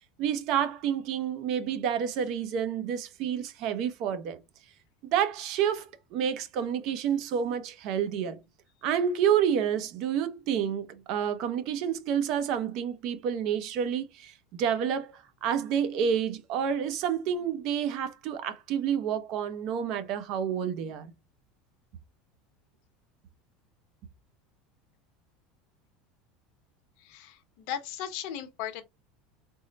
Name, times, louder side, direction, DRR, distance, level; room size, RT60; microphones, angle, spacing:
voice 1, 0.2-4.4 5.1-8.4 8.8-21.1, right 8 dB, 55° right, 0.7 m, -29 dB
voice 2, 27.1-28.8, left 10 dB, 65° left, 0.8 m, -37 dB
3.6 x 2.1 x 3.8 m
supercardioid pair, 135°, 0 cm